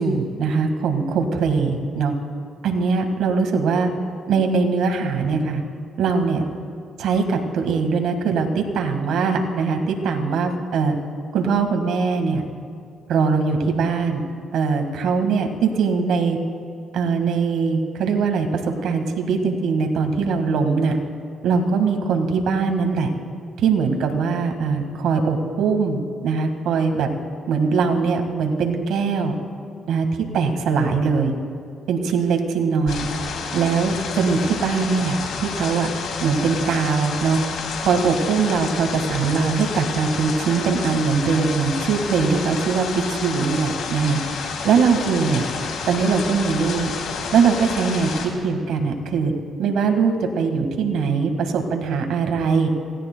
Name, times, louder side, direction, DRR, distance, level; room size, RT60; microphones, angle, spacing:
voice 1, 0.0-2.2 2.6-3.9 4.3-5.6 6.0-6.4 7.0-11.0 11.3-12.4 13.1-14.2 14.5-16.4 16.9-20.9 21.4-23.1 23.6-27.1 27.5-29.4 29.9-30.1 30.3-31.3 31.9-33.1 33.5-35.9 36.2-37.4 37.8-44.2 44.6-45.4 45.9-46.9 47.3-48.1 48.4-49.3 49.6-52.7, right 5 dB, 80° right, 4 dB, 1.7 m, -21 dB
sound 1, 32.9-48.3, left 5 dB, 80° left, 2.6 m, -30 dB
27.0 x 17.0 x 2.3 m, 2.3 s
cardioid pair, 90°, 0 cm